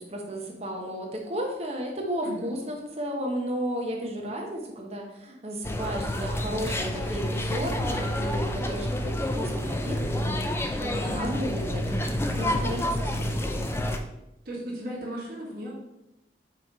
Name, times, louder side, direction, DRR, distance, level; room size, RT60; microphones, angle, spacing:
voice 1, 0.0-13.8, equal, 35° right, 0 dB, 1.1 m, -34 dB
voice 2, 2.2-2.5 11.0-11.3 12.2-12.6 14.5-15.7, left 1 dB, 55° right, -6 dB, 1.9 m, -36 dB
sound 1, 5.6-14.0, left 1 dB, 15° left, 0.4 m, -29 dB
5.6 x 3.2 x 5.4 m, 0.88 s
head